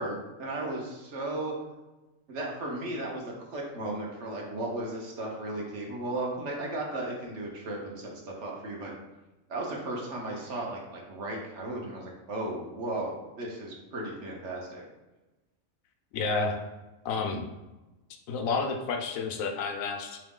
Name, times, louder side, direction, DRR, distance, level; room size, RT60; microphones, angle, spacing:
voice 1, 0.0-1.5 2.3-8.9 9.5-14.8, right 2 dB, 60° right, -1 dB, 1.1 m, -35 dB
voice 2, 16.1-16.6 17.0-17.4 18.3-20.2, left 4 dB, 75° left, 4 dB, 1.0 m, -30 dB
3.9 x 3.0 x 3.6 m, 1.1 s
omnidirectional pair, 1.4 m